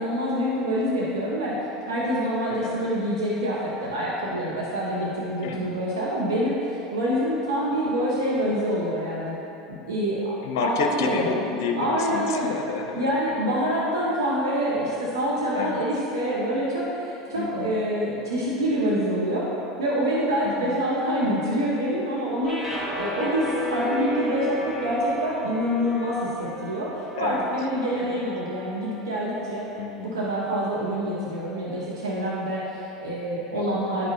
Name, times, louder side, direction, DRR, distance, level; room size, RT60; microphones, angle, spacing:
voice 1, 0.0-1.5 1.8-9.4 9.9-11.3 11.8-12.5 12.9-19.5 19.8-29.7 30.1-34.1, equal, 90° right, -5 dB, 0.9 m, -26 dB
voice 2, 5.4-5.8 10.4-13.1 15.5-15.8 17.3-17.8 20.4-20.8 27.2-27.5 28.0-28.2 29.8-30.1 33.5-33.9, left 5 dB, 75° left, 4 dB, 0.5 m, -30 dB
sound 1, 22.4-28.7, equal, 15° right, 1.5 m, -34 dB
9.8 x 5.3 x 2.7 m, 2.9 s
hypercardioid pair, 90°, 2 cm